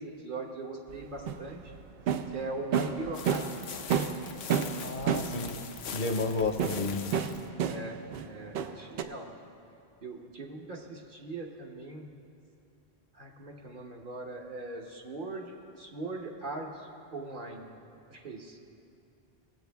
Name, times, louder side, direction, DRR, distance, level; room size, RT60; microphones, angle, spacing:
voice 1, 0.0-1.7 2.3-3.7 7.6-9.3 10.0-12.1 13.1-17.8 18.1-18.6, right 2 dB, 55° right, 0 dB, 1.2 m, -40 dB
sound 1, 0.9-3.6 3.9-5.6 6.4-8.3 8.5-9.0, right 7 dB, 75° right, 0.8 m, -30 dB
sound 2, 3.1-7.5, left 7 dB, 90° left, 0.9 m, -42 dB
voice 2, 4.8-5.6 5.9-7.1, left 3 dB, 55° left, 5 dB, 0.9 m, -31 dB
19.5 x 7.7 x 3.4 m, 2.6 s
omnidirectional pair, 1.0 m